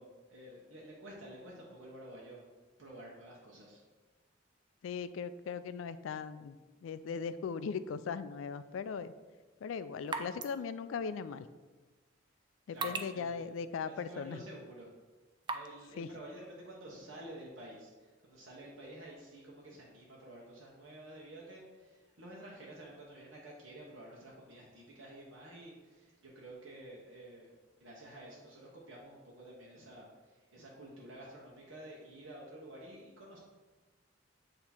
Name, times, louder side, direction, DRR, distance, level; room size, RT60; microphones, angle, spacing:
voice 1, 0.0-2.5 2.8-3.8 12.7-13.5 13.9-14.9 15.5-27.5 27.8-33.4, right 1 dB, 85° right, -4 dB, 1.0 m, -50 dB
voice 2, 4.8-6.6 6.8-9.1 9.6-11.5 12.7-14.4 16.0-16.1, left 6 dB, 80° left, 14 dB, 0.3 m, -39 dB
sound 1, 9.1-15.9, right 4 dB, 25° right, 0.3 m, -45 dB
8.0 x 2.9 x 4.3 m, 1.3 s
head